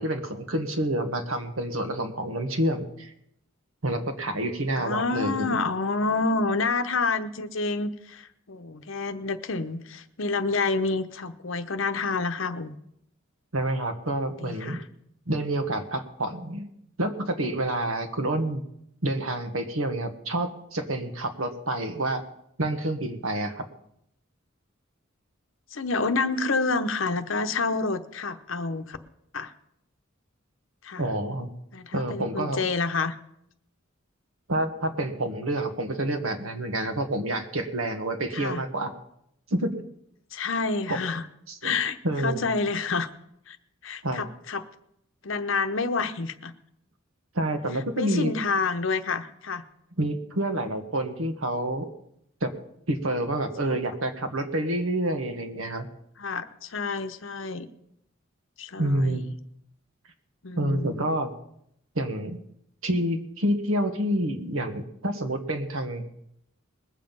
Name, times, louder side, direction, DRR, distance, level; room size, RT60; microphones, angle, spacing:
voice 1, 0.0-3.1 3.8-5.6 13.5-14.8 15.3-16.7 17.0-18.6 19.0-22.2 22.6-23.7 31.0-31.5 31.9-32.6 34.5-38.9 39.5-39.8 40.9-41.0 41.5-41.8 42.0-42.4 44.0-44.2 47.3-48.3 50.0-51.9 52.4-52.5 52.9-55.9 58.8-59.2 60.6-61.3 61.9-62.4 62.8-66.1, right 1 dB, 85° right, 7 dB, 1.4 m, -28 dB
voice 2, 4.7-12.8 14.4-14.8 25.7-29.0 29.3-29.5 30.8-31.1 31.7-33.2 38.3-38.6 40.3-41.3 41.6-43.1 43.5-43.6 43.8-44.6 45.2-46.5 47.9-49.6 53.7-53.8 56.2-57.7 58.6-59.3 60.4-61.2, left 4 dB, 70° left, 10 dB, 0.9 m, -28 dB
20.5 x 7.5 x 5.4 m, 0.75 s
head